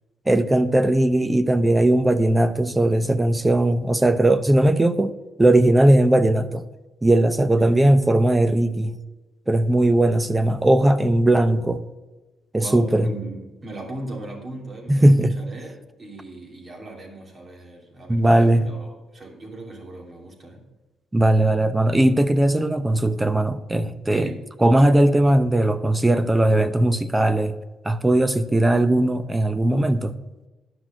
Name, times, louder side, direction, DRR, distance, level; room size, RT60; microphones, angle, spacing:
voice 1, 0.3-5.1 5.4-6.6 7.0-9.0 9.5-11.8 12.5-13.1 14.9-15.4 18.1-18.7 21.1-24.3 24.6-27.5 27.8-30.1, right 1 dB, 15° right, 0.6 m, -18 dB
voice 2, 7.5-7.9 12.6-20.6 24.1-24.4, right 2 dB, 35° right, 2.9 m, -38 dB
10.5 x 6.0 x 5.8 m
cardioid pair, 85°, 0 cm